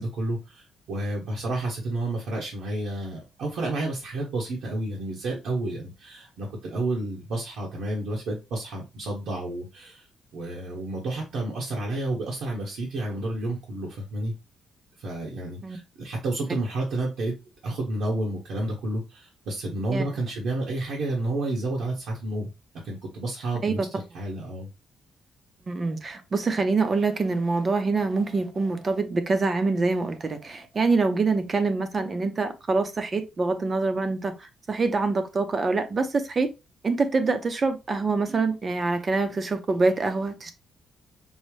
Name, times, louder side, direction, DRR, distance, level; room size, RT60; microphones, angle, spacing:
voice 1, 0.0-10.1 10.3-14.3 15.0-17.4 17.6-22.5 22.8-24.7, right 2 dB, 75° right, 1.2 m, -30 dB
voice 2, 25.7-36.5 36.8-40.5, right 3 dB, 30° right, 0.6 m, -25 dB
5.4 x 2.1 x 3.2 m
cardioid pair, 140°, 0 cm